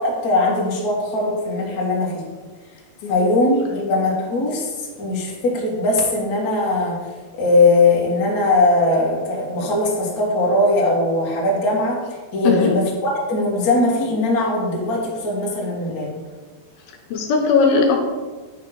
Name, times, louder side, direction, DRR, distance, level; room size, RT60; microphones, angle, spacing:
voice 1, 0.0-2.3 3.1-7.0 7.4-16.2, left 2 dB, 40° left, -5 dB, 1.3 m, -20 dB
voice 2, 17.1-18.0, left 5 dB, 80° left, 2 dB, 2.6 m, -18 dB
9.5 x 3.5 x 6.0 m, 1.4 s
omnidirectional pair, 4.5 m